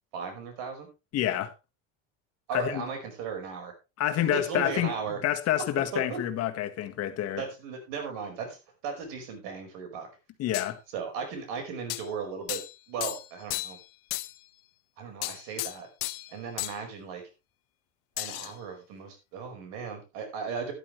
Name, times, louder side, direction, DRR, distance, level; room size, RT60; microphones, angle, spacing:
voice 1, 0.1-0.9 2.5-3.7 4.2-5.2 5.9-6.2 7.4-10.1 10.9-12.6 12.9-13.8 15.0-15.9 16.3-17.2 18.2-20.7, right 5 dB, 75° right, 5.2 m, -36 dB
voice 2, 1.1-1.5 2.5-2.8 4.0-4.9 5.2-7.4 10.4-10.8, left 12 dB, 45° left, 1.7 m, -28 dB
sound 1, 10.5-10.7 11.9-12.1 12.5-12.8 13.0-13.9 14.1-14.4 15.2-16.3 16.6-16.8 18.2-18.5, left 20 dB, 70° left, 1.1 m, -34 dB
13.0 x 11.0 x 3.2 m
cardioid pair, 160°, 36 cm